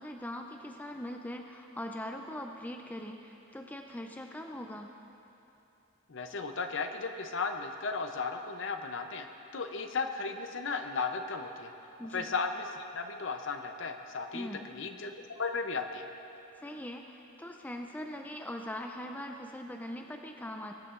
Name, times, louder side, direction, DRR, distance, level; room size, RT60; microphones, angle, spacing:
voice 1, 0.0-4.9 12.0-12.3 14.3-14.6 16.6-20.7, left 1 dB, 10° left, 3 dB, 0.4 m, -41 dB
voice 2, 6.1-9.3 9.5-11.7 12.1-16.1, left 4 dB, 60° left, 6 dB, 0.7 m, -35 dB
20.5 x 9.7 x 2.5 m, 3.0 s
head